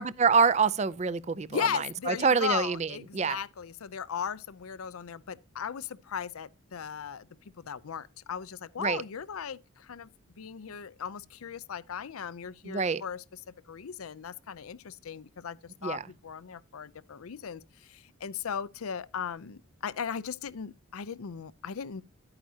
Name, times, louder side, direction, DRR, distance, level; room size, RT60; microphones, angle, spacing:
voice 1, 0.0-3.4 8.8-9.0 12.7-13.0 15.8-16.0, right 5 dB, 30° right, 0.4 m, -26 dB
voice 2, 1.5-7.3 7.6-10.1 10.4-13.2 13.7-22.0, left 7 dB, 85° left, 0.5 m, -37 dB
11.5 x 8.9 x 2.8 m
head